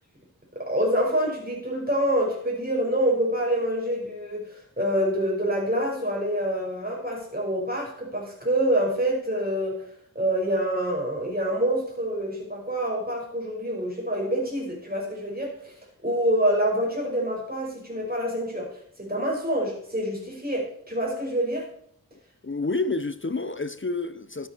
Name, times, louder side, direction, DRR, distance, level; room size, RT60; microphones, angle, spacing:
voice 1, 0.5-4.5 4.8-9.8 10.1-15.7 16.0-18.7 19.0-21.7, equal, 25° right, 5.6 m, -26 dB
voice 2, 22.4-24.5, left 3 dB, 35° left, 0.8 m, -29 dB
12.5 x 9.3 x 4.6 m
wide cardioid pair, 40°, 37 cm